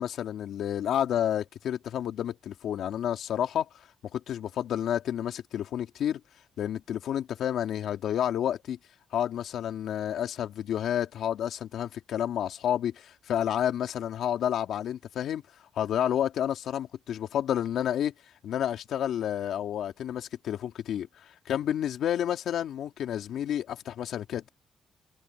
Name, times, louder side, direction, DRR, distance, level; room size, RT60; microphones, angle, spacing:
voice 1, 0.0-3.7 4.1-6.2 6.6-8.8 9.1-15.4 15.8-18.1 18.4-24.5, left 10 dB, 75° left, 2.6 m, -30 dB
cardioid pair, 90°, 0 cm